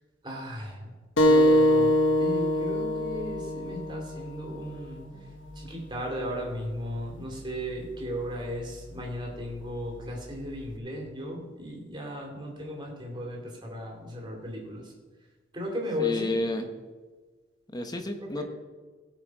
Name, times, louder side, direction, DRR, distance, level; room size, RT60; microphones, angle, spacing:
voice 1, 0.2-0.9 1.2-5.0 5.6-14.9 15.5-16.4 18.2-18.5, left 1 dB, 25° right, -1 dB, 2.9 m, -35 dB
sound 1, 1.2-6.3, equal, 75° left, 1.4 m, -25 dB
voice 2, 16.0-16.7 17.7-18.5, left 1 dB, 20° left, 6 dB, 1.2 m, -31 dB
17.0 x 6.4 x 4.8 m, 1.4 s
head